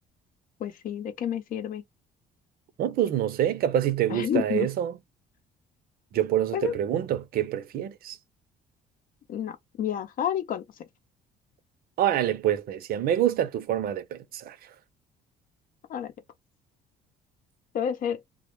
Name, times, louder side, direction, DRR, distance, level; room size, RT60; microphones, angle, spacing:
voice 1, 0.6-1.8 4.1-4.7 6.5-6.7 9.3-10.6 15.9-16.1 17.7-18.2, left 9 dB, 55° left, 0.6 m, -29 dB
voice 2, 2.8-5.0 6.1-8.2 12.0-14.6, right 11 dB, 60° right, 0.6 m, -26 dB
2.2 x 2.0 x 3.0 m
cardioid pair, 110°, 17 cm